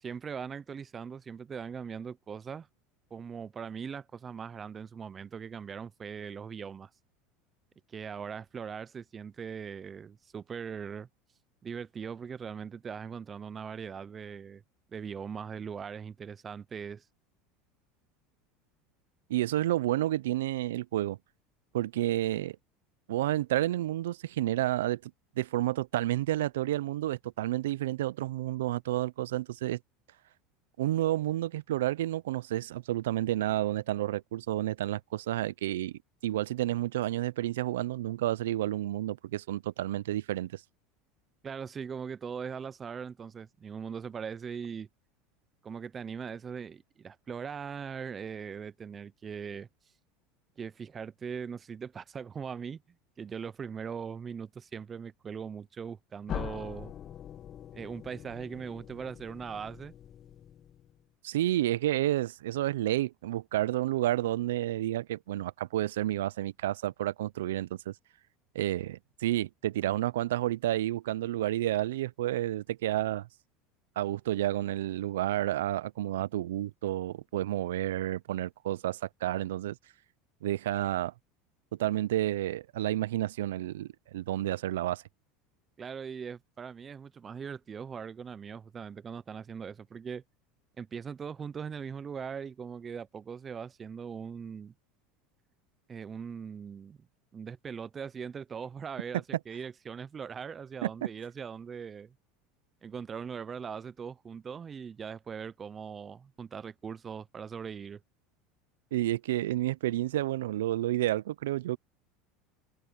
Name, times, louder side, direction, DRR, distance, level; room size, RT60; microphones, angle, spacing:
voice 1, 0.0-2.7 3.1-6.9 7.9-11.1 11.6-14.6 14.9-17.0 41.4-44.9 45.6-49.7 50.6-52.8 53.2-56.9 57.7-59.9 85.8-90.2 90.8-94.7 95.9-97.0 97.3-102.1 102.8-108.0, right 6 dB, 30° right, 0.6 m, -40 dB
voice 2, 19.3-21.2 21.7-22.6 23.1-25.1 25.4-29.8 30.8-40.6 61.2-67.9 68.5-73.3 74.0-79.8 80.4-81.1 81.8-85.0 100.8-101.1 108.9-111.8, right 14 dB, 85° right, 0.5 m, -30 dB
sound 1, 56.3-61.0, left 10 dB, 40° left, 1.0 m, -43 dB
supercardioid pair, 100°, 0 cm